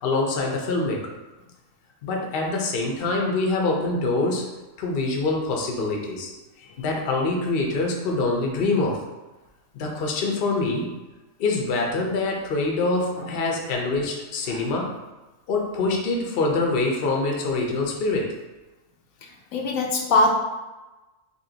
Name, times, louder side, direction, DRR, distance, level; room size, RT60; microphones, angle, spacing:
voice 1, 0.0-1.1 2.0-4.4 4.8-6.3 6.8-9.0 9.7-10.9 11.4-14.9 15.5-18.3, left 3 dB, 55° left, 0 dB, 0.8 m, -25 dB
voice 2, 19.2-20.3, left 2 dB, 80° left, 1 dB, 1.0 m, -23 dB
4.3 x 2.8 x 2.8 m, 1.1 s
omnidirectional pair, 1.4 m